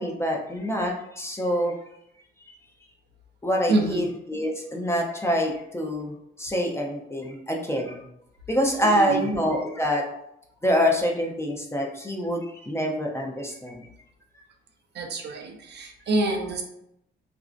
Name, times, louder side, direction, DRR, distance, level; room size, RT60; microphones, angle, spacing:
voice 1, 0.0-1.7 3.4-8.0 8.5-10.0 10.6-13.9, equal, 15° left, 0 dB, 0.4 m, -26 dB
voice 2, 3.7-4.1 8.8-9.3 14.9-16.6, right 2 dB, 60° right, 3 dB, 0.5 m, -26 dB
2.5 x 2.0 x 2.4 m, 0.78 s
cardioid pair, 90°, 20 cm